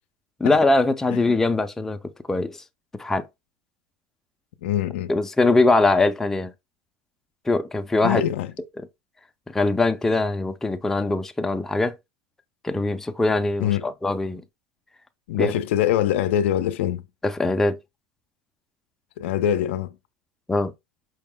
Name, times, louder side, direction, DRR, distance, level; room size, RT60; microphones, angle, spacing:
voice 1, 0.4-2.0 2.3-2.6 2.9-3.3 5.1-6.5 7.5-8.2 9.5-12.0 12.6-14.4 15.4-15.5 17.2-17.8 20.5-20.7, left 2 dB, 5° left, 0.4 m, -22 dB
voice 2, 4.6-5.1 8.0-8.5 13.6-13.8 15.3-17.0 19.2-20.0, left 11 dB, 85° left, 0.4 m, -23 dB
4.8 x 2.1 x 3.5 m
supercardioid pair, 135°, 6 cm